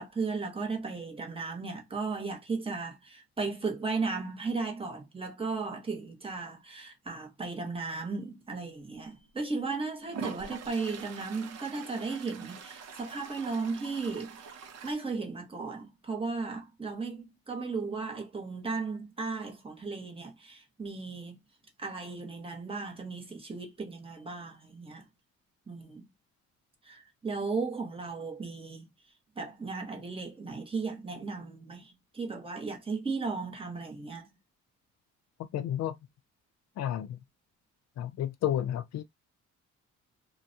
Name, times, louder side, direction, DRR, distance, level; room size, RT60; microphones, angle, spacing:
voice 1, 0.0-14.5 14.8-21.4 21.8-25.0 25.7-26.1 26.8-28.8 29.4-34.3, right 4 dB, 20° right, 1.0 m, -35 dB
Toilet flush, 9.1-9.2 10.1-14.9, right 5 dB, 60° right, 0.6 m, -44 dB
voice 2, 35.5-36.0 36.8-37.2 38.0-39.0, left 11 dB, 60° left, 0.5 m, -31 dB
2.3 x 2.2 x 2.7 m
cardioid pair, 90°, 30 cm